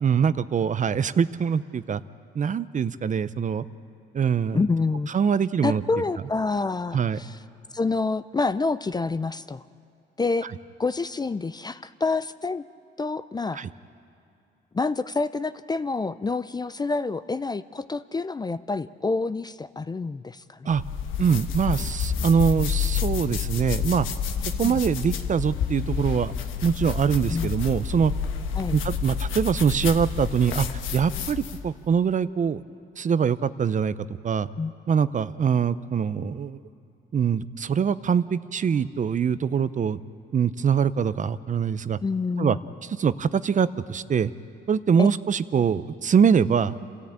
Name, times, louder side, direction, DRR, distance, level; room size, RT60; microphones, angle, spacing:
voice 1, 0.0-2.0 2.3-3.6 4.1-4.6 5.1-5.8 6.9-7.2 13.5-13.7 20.6-20.8 21.2-24.1 24.6-26.3 26.6-28.1 28.7-30.7 30.9-32.6 33.0-33.9 34.2-34.5 34.9-36.6 37.1-40.0 40.3-42.0 42.4-42.6 43.0-44.3 44.7-46.7, right 7 dB, 40° right, 15 dB, 0.6 m, -23 dB
voice 2, 4.5-5.1 5.6-7.4 7.7-9.6 10.2-10.5 10.8-12.6 13.0-13.7 14.7-20.7 24.6-24.8 27.3-27.5 28.6-28.8 34.6-34.7 42.0-42.6 45.0-45.1, left 3 dB, 20° left, 14 dB, 0.4 m, -27 dB
sound 1, 20.7-31.7, left 7 dB, 85° left, 1.2 m, -29 dB
28.0 x 14.0 x 8.7 m, 2.6 s
cardioid pair, 90°, 20 cm